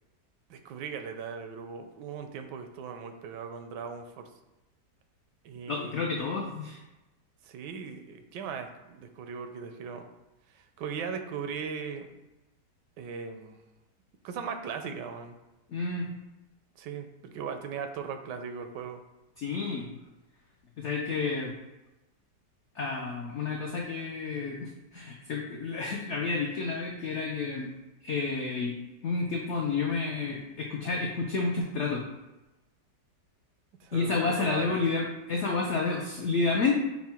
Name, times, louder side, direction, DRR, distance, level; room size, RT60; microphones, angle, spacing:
voice 1, 0.5-4.3 5.4-6.3 7.4-10.1 10.5-12.1 13.0-13.6 14.2-15.3 16.8-19.0 33.8-34.8, right 6 dB, 80° right, 7 dB, 1.2 m, -38 dB
voice 2, 5.7-6.8 15.7-16.1 19.4-19.9 20.8-21.5 22.8-27.7 28.0-28.7 29.0-32.0 33.9-36.8, left 4 dB, 80° left, 0 dB, 0.6 m, -30 dB
5.7 x 2.2 x 4.3 m, 1.0 s
omnidirectional pair, 1.9 m